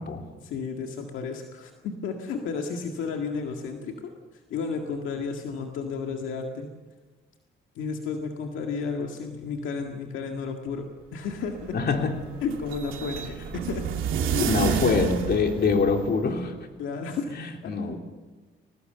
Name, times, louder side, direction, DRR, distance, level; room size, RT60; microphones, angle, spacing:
voice 1, 0.4-4.1 4.5-6.7 7.8-10.9 11.1-11.8 12.4-13.9 14.3-14.5 15.6-15.8 16.8-17.3 17.6-17.7, left 5 dB, 85° left, 3 dB, 2.0 m, -32 dB
sound 1, 11.2-16.3, right 8 dB, 85° right, 2.7 m, -30 dB
voice 2, 11.7-12.2 14.4-16.5 17.3-18.0, left 4 dB, 55° left, 3 dB, 3.3 m, -24 dB
22.5 x 19.0 x 6.8 m, 1.3 s
cardioid pair, 90°, 20 cm